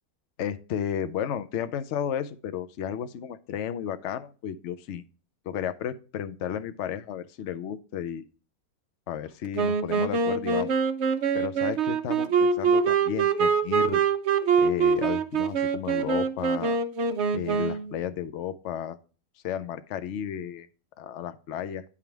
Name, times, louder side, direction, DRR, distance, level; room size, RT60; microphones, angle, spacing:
voice 1, 0.4-5.0 5.4-8.2 9.1-10.7 11.3-14.0 14.6-16.8 17.3-19.0 19.4-20.7 21.0-21.8, left 9 dB, 60° left, 11 dB, 0.9 m, -33 dB
Wind instrument woodwind instrument, 9.5-18.0, right 5 dB, 55° right, 0.9 m, -24 dB
10.0 x 3.7 x 4.5 m, 0.36 s
omnidirectional pair, 1.6 m